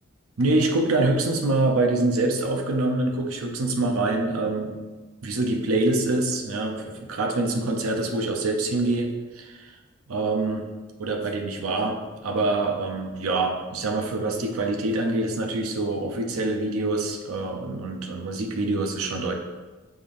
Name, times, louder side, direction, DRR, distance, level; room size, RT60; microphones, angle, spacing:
voice 1, 0.4-4.8 5.2-9.7 10.1-10.7 11.0-12.0 12.2-19.3, right 2 dB, 90° right, 3 dB, 0.6 m, -25 dB
5.2 x 3.5 x 2.5 m, 1.2 s
head